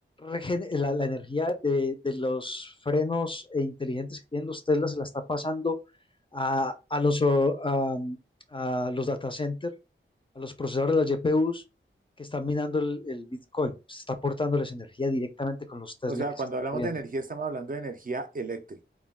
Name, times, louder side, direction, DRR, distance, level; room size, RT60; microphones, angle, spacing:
voice 1, 0.2-5.7 6.3-8.2 8.5-9.7 10.4-11.6 12.2-16.2 16.7-16.9, left 2 dB, 25° left, 0.4 m, -28 dB
voice 2, 16.1-18.8, right 3 dB, 40° right, 0.4 m, -33 dB
2.2 x 2.2 x 3.4 m
wide cardioid pair, 85°, 21 cm